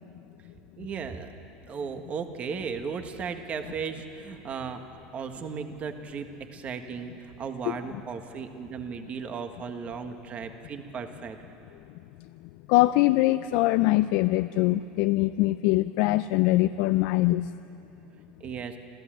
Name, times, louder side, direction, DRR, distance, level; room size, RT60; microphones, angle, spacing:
voice 1, 0.8-1.3 1.7-4.8 5.1-11.4 18.4-18.8, right 6 dB, 35° right, 6 dB, 1.7 m, -36 dB
voice 2, 12.7-17.5, left 17 dB, 65° left, 12 dB, 0.5 m, -23 dB
27.5 x 14.5 x 9.1 m, 2.8 s
supercardioid pair, 120°, 4 cm